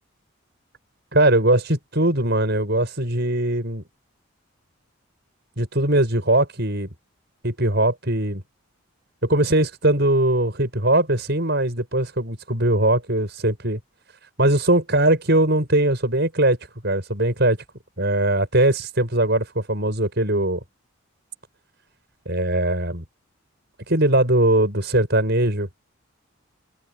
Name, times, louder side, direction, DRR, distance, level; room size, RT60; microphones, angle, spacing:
voice 1, 1.1-3.8 5.6-6.9 7.4-8.4 9.2-13.8 14.4-16.6 16.8-17.6 18.0-20.6 22.2-23.0 23.9-25.7, right 1 dB, 50° right, 6.5 m, -20 dB
open air
head